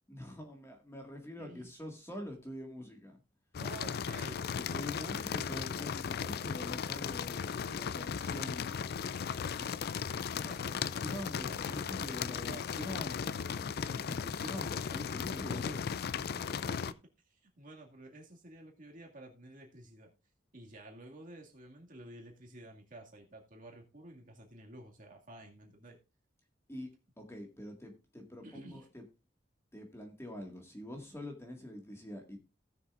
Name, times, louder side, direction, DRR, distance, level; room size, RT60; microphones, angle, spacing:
voice 1, 0.1-3.2 4.5-9.0 9.5-9.7 10.3-15.9 26.7-26.9 27.2-29.0 29.7-32.4, left 1 dB, 15° left, 3 dB, 1.9 m, -45 dB
sound 1, 3.5-16.9, left 7 dB, 55° left, 0.4 m, -36 dB
voice 2, 3.6-4.9 10.4-10.8 11.5-11.9 16.3-17.0 17.3-20.1 20.5-26.0 28.4-28.9, right 1 dB, 45° right, 1 dB, 2.2 m, -51 dB
18.0 x 6.8 x 2.5 m, 0.27 s
head